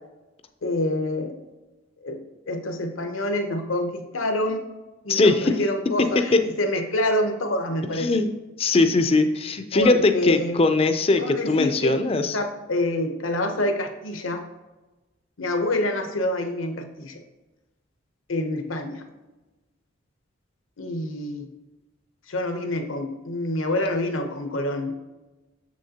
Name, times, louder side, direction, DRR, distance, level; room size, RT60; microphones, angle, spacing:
voice 1, 0.6-1.4 2.0-4.7 5.0-8.1 9.7-10.6 11.2-12.0 12.3-14.4 15.4-17.2 18.3-19.0 20.8-21.5 22.3-24.9, left 1 dB, 75° left, 6 dB, 0.9 m, -27 dB
voice 2, 5.1-5.5 6.3-6.4 8.0-8.3 8.6-12.4, left 3 dB, 30° left, 8 dB, 0.4 m, -20 dB
7.0 x 6.3 x 2.8 m, 1.1 s
head